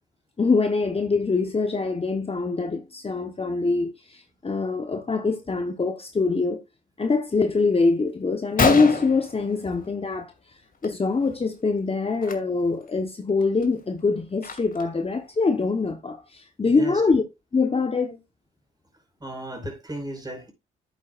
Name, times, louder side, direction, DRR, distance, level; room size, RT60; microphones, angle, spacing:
voice 1, 0.4-6.6 7.0-10.3 10.8-17.2 17.5-18.2, left 4 dB, 30° left, 1.1 m, -24 dB
Gunshot gunfire, 7.9-8.0 8.3-8.4 8.6-10.2 10.5-10.9 11.1-11.4 12.1-12.3 12.9-13.0 13.4-15.0, left 4 dB, 45° left, 2.2 m, -27 dB
voice 2, 16.6-17.0 19.2-20.5, right 1 dB, 20° right, 4.9 m, -35 dB
10.5 x 8.7 x 2.5 m
cardioid pair, 70°, 20 cm